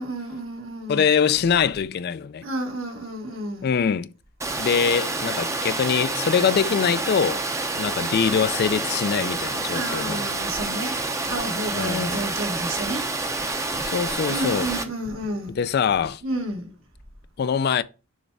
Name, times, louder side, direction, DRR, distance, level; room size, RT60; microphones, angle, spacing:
voice 1, 0.0-1.1 2.4-3.8 9.7-13.1 13.7-13.8 14.3-15.6 16.2-16.8, right 1 dB, 70° right, 1.5 m, -31 dB
voice 2, 0.9-2.4 3.6-4.1 4.6-7.4 7.8-10.2 11.7-12.3 13.9-14.7 15.6-16.2 17.4-17.8, left 7 dB, 50° left, 0.3 m, -23 dB
Water, 4.4-14.8, right 2 dB, 15° right, 0.6 m, -28 dB
6.5 x 3.3 x 4.6 m
head